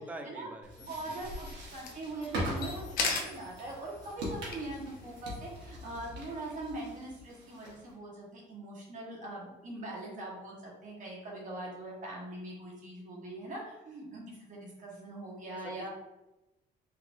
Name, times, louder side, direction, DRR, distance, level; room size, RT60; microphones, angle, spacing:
voice 1, 0.0-1.2 15.6-15.9, right 1 dB, 10° right, 4 dB, 0.4 m, -45 dB
sound 1, 0.6-7.9, equal, 85° right, 1.1 m, -42 dB
sound 2, 0.8-5.9, left 4 dB, 60° left, 0.7 m, -40 dB
voice 2, 0.8-15.9, right 2 dB, 50° right, -2 dB, 1.2 m, -42 dB
3.7 x 2.8 x 2.5 m, 0.97 s
cardioid pair, 110°, 17 cm